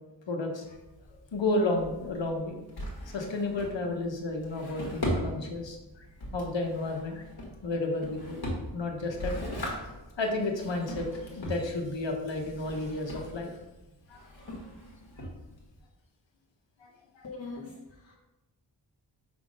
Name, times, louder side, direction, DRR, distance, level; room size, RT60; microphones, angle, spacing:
voice 1, 0.3-0.8 1.3-2.6 3.1-6.0 6.3-7.2 7.6-8.4 8.7-9.6 9.8-13.5 14.1-14.2 14.5-14.6 15.2-15.3 16.8-17.2, left 2 dB, 80° left, 2 dB, 1.0 m, -32 dB
Drawer open or close, 0.6-15.8, equal, 60° left, 1.7 m, -39 dB
voice 2, 17.2-18.2, left 3 dB, 35° left, -3 dB, 0.9 m, -42 dB
5.5 x 3.5 x 5.2 m, 1.0 s
wide cardioid pair, 120°, 44 cm